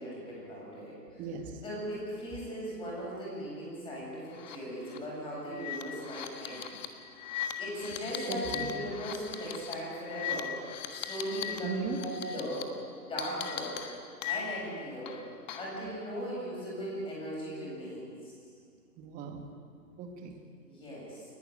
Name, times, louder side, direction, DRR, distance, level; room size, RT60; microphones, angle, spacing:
voice 1, 0.0-1.2 1.6-6.7 7.6-10.6 10.9-12.7 13.0-13.8 14.2-15.2 15.5-18.3 20.6-21.3, equal, 10° left, -5 dB, 7.9 m, -38 dB
voice 2, 1.2-1.5 8.3-8.7 11.6-12.0 19.0-19.5 20.0-20.4, right 5 dB, 15° right, 4 dB, 1.9 m, -37 dB
sound 1, 4.3-4.6 4.9-5.0 5.5-11.6 11.9-12.6 13.2-14.7 15.1-15.8, left 9 dB, 25° left, 1.4 m, -39 dB
29.5 x 11.5 x 9.3 m, 2.3 s
figure-of-eight pair, 135°, 49 cm